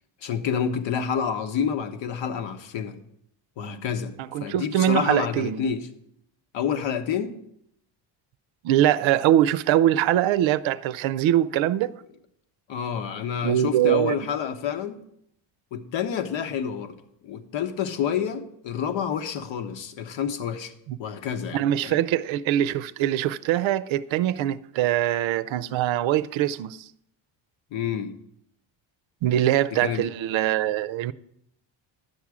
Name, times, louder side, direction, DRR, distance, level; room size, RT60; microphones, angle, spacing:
voice 1, 0.2-3.0 3.6-5.9 6.5-7.4 12.7-15.0 15.7-17.0 17.2-20.7 21.0-22.0 27.7-28.1 29.7-30.1, left 7 dB, 70° left, 1.1 m, -28 dB
voice 2, 4.2-5.6 8.6-12.0 13.4-14.2 20.9-21.0 21.5-26.9 29.2-31.1, right 12 dB, 75° right, 0.6 m, -23 dB
11.0 x 7.3 x 4.9 m
cardioid pair, 125°, 47 cm